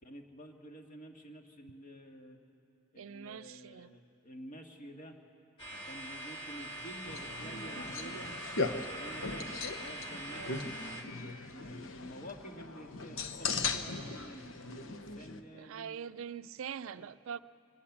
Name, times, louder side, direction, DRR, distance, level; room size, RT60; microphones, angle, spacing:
voice 1, 0.0-2.4 2.9-5.2 5.8-8.3 8.9-16.0 17.0-17.1, equal, 40° left, 1.7 m, -50 dB
voice 2, 3.0-3.9 10.2-10.8 15.5-17.4, right 7 dB, 75° right, 0.4 m, -43 dB
sound 1, 5.6-11.0, right 1 dB, 25° left, 2.2 m, -43 dB
sound 2, 7.1-15.4, left 4 dB, 70° left, 1.0 m, -39 dB
25.0 x 17.5 x 7.3 m
head